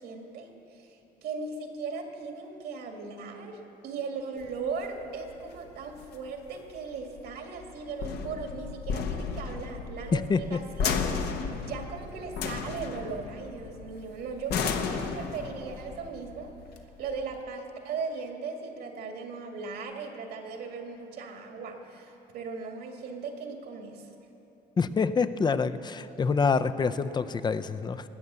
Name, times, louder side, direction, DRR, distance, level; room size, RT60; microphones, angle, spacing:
voice 1, 0.0-16.5 17.0-24.1, right 4 dB, 75° right, 3 dB, 1.9 m, -38 dB
sound 1, 4.4-17.4, left 6 dB, 70° left, 1.1 m, -34 dB
voice 2, 24.8-28.0, left 5 dB, 25° left, 12 dB, 0.5 m, -26 dB
19.5 x 8.3 x 6.8 m, 3.0 s
cardioid pair, 110°, 17 cm